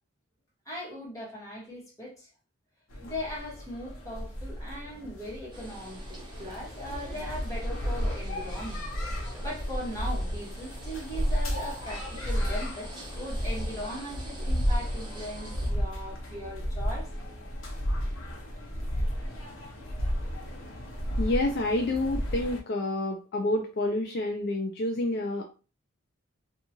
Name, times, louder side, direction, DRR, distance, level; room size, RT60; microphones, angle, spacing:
voice 1, 0.6-2.3 3.0-8.8 9.2-12.9 13.2-17.1, equal, 15° left, 1.3 m, -39 dB
sound 1, 2.9-22.6, equal, 85° left, 0.8 m, -33 dB
sound 2, 5.5-15.7, equal, 20° right, 0.8 m, -46 dB
voice 2, 21.2-25.4, left 2 dB, 50° left, 0.3 m, -28 dB
2.7 x 2.3 x 2.8 m
head